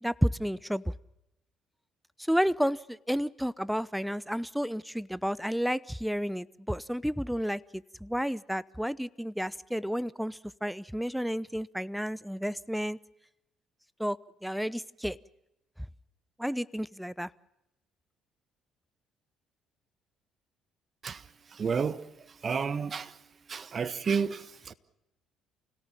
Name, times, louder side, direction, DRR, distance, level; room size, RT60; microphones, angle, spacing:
voice 1, 0.0-0.9 2.2-13.0 14.0-15.2 16.4-17.3, equal, ahead, 0.8 m, -31 dB
voice 2, 21.5-22.1 22.4-23.2 23.5-24.7, right 6 dB, 45° right, 1.5 m, -31 dB
29.0 x 18.0 x 7.2 m
hypercardioid pair, 55°, 0 cm